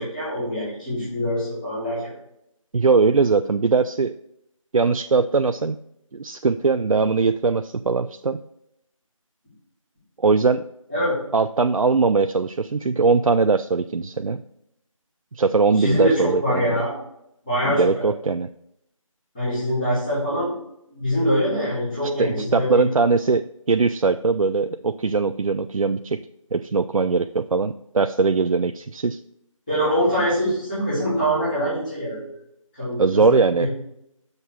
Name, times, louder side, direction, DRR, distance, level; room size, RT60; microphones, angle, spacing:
voice 1, 0.0-2.1 10.9-11.2 15.7-16.9 17.4-18.1 19.3-20.5 20.9-22.8 29.7-32.3 32.7-33.7, equal, 15° left, -16 dB, 2.8 m, -24 dB
voice 2, 2.7-4.1 4.7-5.8 6.1-8.4 10.2-10.6 11.3-14.4 15.3-16.8 17.6-18.5 22.2-26.2 26.5-29.2 33.0-33.7, right 4 dB, 75° right, 9 dB, 0.4 m, -20 dB
6.5 x 5.5 x 4.6 m, 0.78 s
figure-of-eight pair, 170°, 18 cm